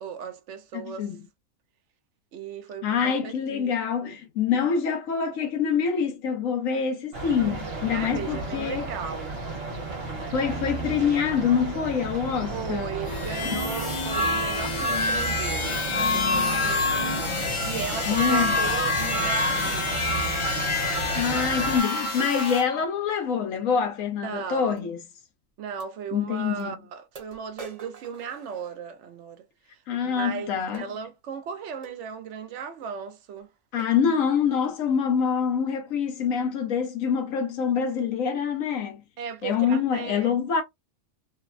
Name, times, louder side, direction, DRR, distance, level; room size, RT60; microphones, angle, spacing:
voice 1, 0.0-1.1 2.3-3.7 4.0-4.2 7.9-9.4 12.5-19.9 24.2-24.9 25.6-29.5 29.7-29.8 30.0-33.5 39.2-40.3, right 7 dB, 70° right, 0.9 m, -36 dB
voice 2, 0.7-1.2 2.8-8.9 10.3-12.9 13.4-13.6 18.1-18.6 21.1-25.0 26.1-26.8 29.9-30.8 33.7-39.0 39.4-40.6, left 7 dB, 85° left, 1.2 m, -25 dB
sound 1, 7.1-21.8, right 3 dB, 50° right, 1.2 m, -34 dB
sound 2, 13.0-22.6, left 2 dB, 40° left, 0.4 m, -27 dB
sound 3, 24.8-24.9 25.8-25.9 26.6-26.7 27.2-29.1 30.7-31.0 31.8-32.0 32.8-33.0 33.4-33.5 33.8-34.1 34.6-34.9, right 4 dB, 35° right, 0.7 m, -46 dB
3.2 x 2.0 x 2.4 m
omnidirectional pair, 1.3 m